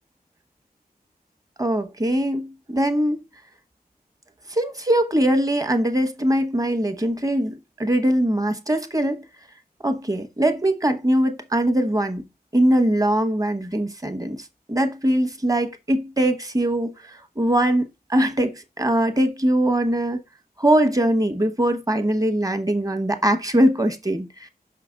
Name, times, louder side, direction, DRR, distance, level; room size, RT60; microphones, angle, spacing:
voice 1, 1.6-3.2 4.5-9.2 9.8-12.2 12.5-14.4 14.7-17.8 18.1-20.2 20.6-24.5, right 1 dB, 20° right, 1.1 m, -21 dB
5.9 x 5.8 x 3.8 m
wide cardioid pair, 100°, 16 cm